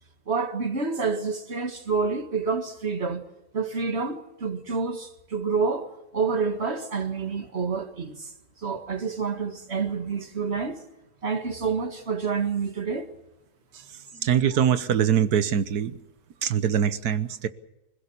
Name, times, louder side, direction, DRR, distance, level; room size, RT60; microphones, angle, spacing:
voice 1, 0.3-3.2 3.5-8.3 8.6-10.8 11.2-13.1, right 5 dB, 45° right, 2.0 m, -28 dB
voice 2, 14.2-16.0 16.4-17.5, right 9 dB, 80° right, 1.5 m, -23 dB
25.5 x 16.5 x 7.0 m
omnidirectional pair, 1.6 m